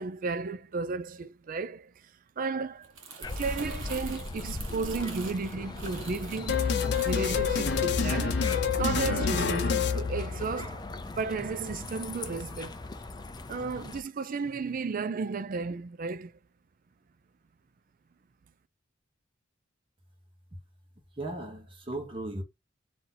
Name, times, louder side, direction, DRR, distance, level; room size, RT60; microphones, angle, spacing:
voice 1, 0.0-2.1 2.4-2.9 3.2-6.7 7.0-10.9 11.2-12.8 13.5-16.3, right 4 dB, 45° right, 0.4 m, -34 dB
Crumpling crinkling, 2.7-9.1 9.4-9.7, right 4 dB, 85° right, 1.3 m, -46 dB
sound 1, 3.2-14.0, left 2 dB, 20° left, 0.5 m, -40 dB
sound 2, 6.5-10.8, left 6 dB, 60° left, 0.7 m, -28 dB
voice 2, 21.2-22.4, right 2 dB, 25° right, 1.1 m, -36 dB
4.1 x 2.9 x 3.8 m
head